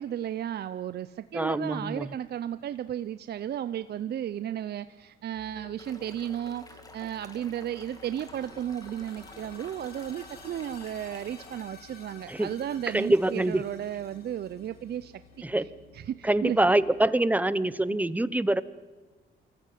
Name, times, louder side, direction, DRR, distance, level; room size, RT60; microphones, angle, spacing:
voice 1, 0.0-15.1 15.6-15.7 15.9-16.6 17.9-18.0, right 10 dB, 55° right, 13 dB, 0.6 m, -34 dB
voice 2, 1.3-2.1 12.3-12.5 12.9-13.7 15.4-15.7 16.2-18.6, right 1 dB, 10° right, 16 dB, 0.8 m, -25 dB
sound 1, 5.3-17.1, left 3 dB, 80° left, 5.8 m, -56 dB
sound 2, 5.8-11.6, left 2 dB, 20° left, 2.4 m, -51 dB
sound 3, 7.7-15.5, left 4 dB, 50° left, 3.6 m, -52 dB
24.5 x 14.5 x 9.2 m, 1.3 s
cardioid pair, 90°, 20 cm